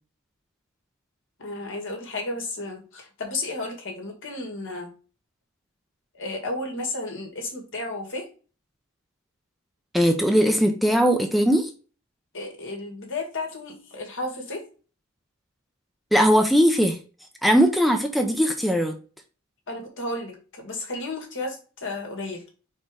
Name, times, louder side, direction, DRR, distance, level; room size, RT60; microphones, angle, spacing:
voice 1, 1.4-4.9 6.1-8.3 12.3-14.6 19.7-22.4, left 2 dB, 60° left, 2 dB, 2.0 m, -33 dB
voice 2, 9.9-11.7 16.1-17.0 17.4-19.0, equal, ahead, 4 dB, 0.6 m, -19 dB
4.5 x 4.4 x 4.8 m, 0.36 s
head